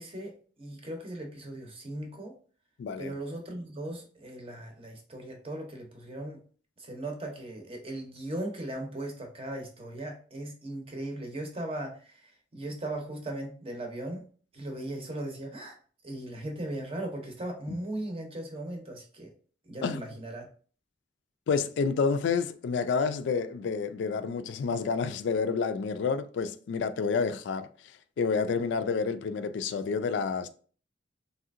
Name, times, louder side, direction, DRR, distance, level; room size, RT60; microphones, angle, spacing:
voice 1, 0.0-2.3 3.0-6.4 6.8-14.3 14.5-15.8 16.0-19.3 19.6-20.5, right 1 dB, 30° right, 0.7 m, -38 dB
voice 2, 2.8-3.1 19.8-20.0 21.5-27.7 28.2-30.5, left 5 dB, 75° left, 0.3 m, -29 dB
3.2 x 2.7 x 2.4 m
head